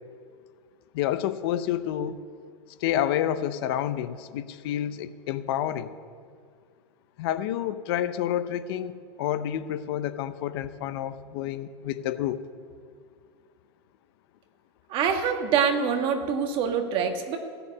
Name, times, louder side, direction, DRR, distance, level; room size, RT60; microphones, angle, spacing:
voice 1, 0.9-2.2 2.8-5.9 7.2-12.4, left 11 dB, 55° left, 13 dB, 0.7 m, -29 dB
voice 2, 14.9-17.4, right 7 dB, 35° right, 5 dB, 1.6 m, -25 dB
15.5 x 6.9 x 9.6 m, 2.1 s
supercardioid pair, 155°, 15 cm